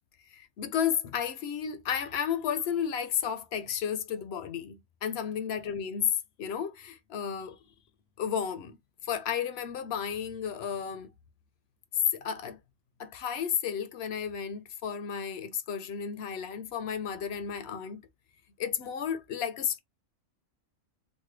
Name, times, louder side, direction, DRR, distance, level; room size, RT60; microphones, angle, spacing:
voice 1, 0.3-6.1 6.4-7.6 8.2-8.8 9.0-11.1 12.1-12.6 13.0-18.0 18.6-19.8, left 8 dB, 65° left, 0.6 m, -33 dB
3.2 x 2.1 x 3.1 m
omnidirectional pair, 1.4 m